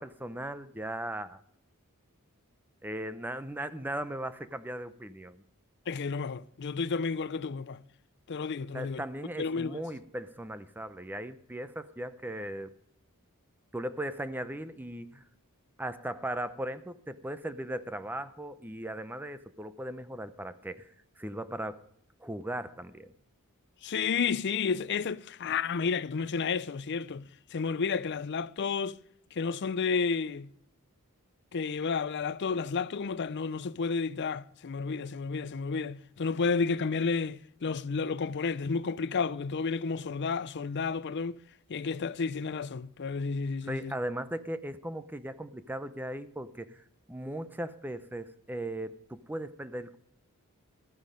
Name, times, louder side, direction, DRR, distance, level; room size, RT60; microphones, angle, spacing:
voice 1, 0.0-1.4 2.8-5.4 8.7-12.7 13.7-15.2 15.8-20.8 21.2-21.8 22.2-23.1 43.7-46.8 47.1-50.0, right 1 dB, 10° right, 0.6 m, -38 dB
voice 2, 5.9-7.8 8.3-9.0 9.4-9.8 23.8-29.0 29.3-30.5 31.5-41.4 41.7-43.9, left 5 dB, 50° left, 0.5 m, -31 dB
13.5 x 9.5 x 5.1 m
head